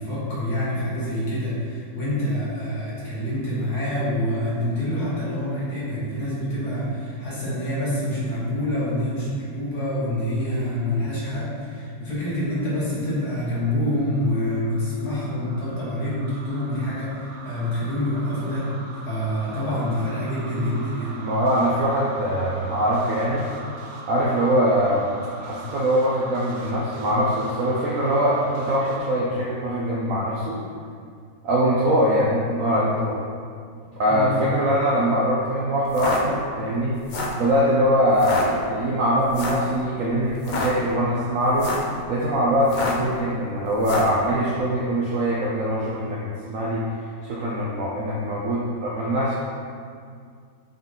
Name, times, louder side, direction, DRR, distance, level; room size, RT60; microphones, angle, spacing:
voice 1, 0.0-18.7 19.0-21.2 34.1-34.5, left 1 dB, 70° left, -9 dB, 2.4 m, -26 dB
sound 1, 13.1-29.0, right 2 dB, 80° right, 1.4 m, -41 dB
voice 2, 21.2-23.5 24.1-25.1 25.4-30.6 31.4-33.2 34.0-37.0 37.4-41.7 42.1-49.3, equal, 60° right, -5 dB, 1.0 m, -22 dB
sound 2, 35.8-36.2 37.0-37.4 38.1-38.4 39.3-39.7 40.3-40.7 41.5-41.9 42.6-43.1 43.8-44.2, left 3 dB, 90° left, 0.4 m, -28 dB
7.0 x 3.9 x 3.8 m, 2.2 s
omnidirectional pair, 1.8 m